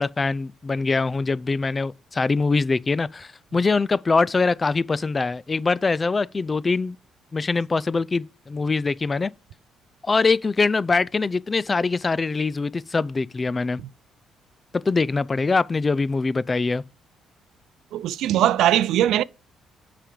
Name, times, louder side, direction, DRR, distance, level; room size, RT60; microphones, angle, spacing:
voice 1, 0.0-7.0 7.3-9.3 10.0-13.8 14.7-16.8, left 4 dB, 25° left, 0.4 m, -23 dB
voice 2, 17.9-19.2, right 12 dB, 80° right, 0.4 m, -20 dB
7.5 x 5.1 x 5.2 m
cardioid pair, 105°, 0 cm